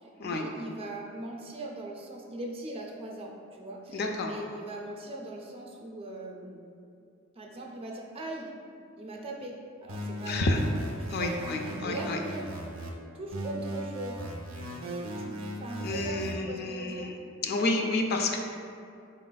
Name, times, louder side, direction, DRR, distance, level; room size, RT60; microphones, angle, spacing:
voice 1, 0.0-6.6 7.3-8.5 9.0-10.5 11.0-11.3 11.6-12.5 13.1-14.2 15.2-17.1, right 2 dB, 30° right, -1 dB, 0.4 m, -40 dB
voice 2, 3.9-4.3 10.3-10.6 11.1-12.2 15.8-17.1 17.4-18.4, left 2 dB, 50° left, 3 dB, 0.4 m, -30 dB
sound 1, 9.9-12.9 13.3-16.3, right 1 dB, 85° right, 0.6 m, -37 dB
4.1 x 4.0 x 2.2 m, 2.5 s
head